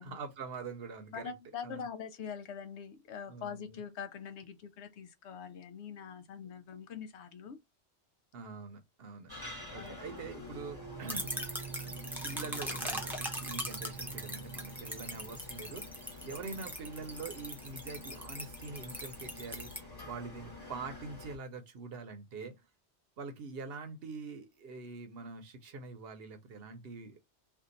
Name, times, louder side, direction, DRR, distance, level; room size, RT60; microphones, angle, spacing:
voice 1, 0.0-1.3 1.6-1.9 3.3-3.8 8.3-11.3 12.2-22.6 23.2-27.2, right 4 dB, 65° right, 0.8 m, -44 dB
voice 2, 1.1-7.6 9.7-10.0 12.7-12.8, left 7 dB, 80° left, 0.9 m, -44 dB
sound 1, 9.3-21.4, left 3 dB, 20° left, 1.2 m, -49 dB
sound 2, 10.5-15.7, right 8 dB, 45° left, 1.2 m, -47 dB
sound 3, 11.1-19.8, equal, ahead, 0.6 m, -41 dB
2.7 x 2.5 x 3.7 m
omnidirectional pair, 1.2 m